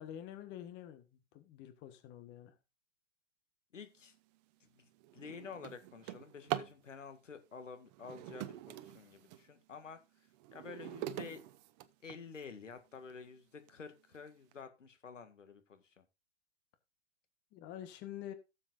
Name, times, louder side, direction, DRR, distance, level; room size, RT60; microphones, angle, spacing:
voice 1, 0.0-2.6 17.5-18.3, left 11 dB, 30° left, 1.4 m, -47 dB
voice 2, 3.7-4.1 4.7-10.0 10.5-11.4 12.0-16.0, left 5 dB, 85° left, 1.9 m, -50 dB
Drawer open or close, 4.1-4.4 4.8-6.8 7.9-9.5 10.0-12.4 13.1-13.2 13.7-13.8 14.1-14.5, right 13 dB, 35° right, 0.8 m, -43 dB
16.5 x 7.5 x 2.5 m
hypercardioid pair, 120°, 36 cm